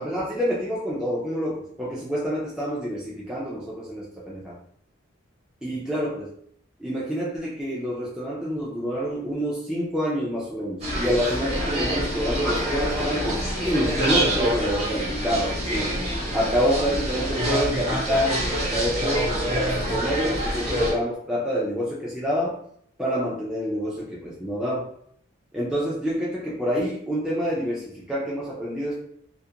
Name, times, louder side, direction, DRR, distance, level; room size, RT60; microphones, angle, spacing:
voice 1, 0.0-4.6 5.6-6.3 6.8-15.9 16.3-22.6 23.0-24.9 25.5-29.0, equal, 5° right, -6 dB, 0.3 m, -27 dB
sound 1, 10.8-20.9, equal, 30° right, 0.9 m, -26 dB
2.4 x 2.1 x 2.7 m, 0.66 s
head